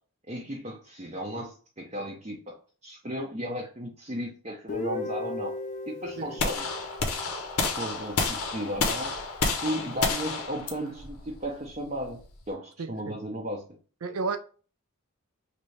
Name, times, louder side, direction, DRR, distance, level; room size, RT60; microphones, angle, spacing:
voice 1, 0.3-2.6 2.8-5.6 5.9-6.7 7.8-9.1 9.6-12.2 12.5-13.6, equal, 30° right, 0.6 m, -35 dB
Guitar, 4.7-8.5, left 3 dB, 35° left, 0.3 m, -37 dB
sound 1, 6.4-12.5, left 4 dB, 90° left, 0.7 m, -30 dB
voice 2, 12.8-13.2 14.0-14.4, right 4 dB, 80° right, 0.5 m, -32 dB
3.3 x 2.7 x 3.2 m
head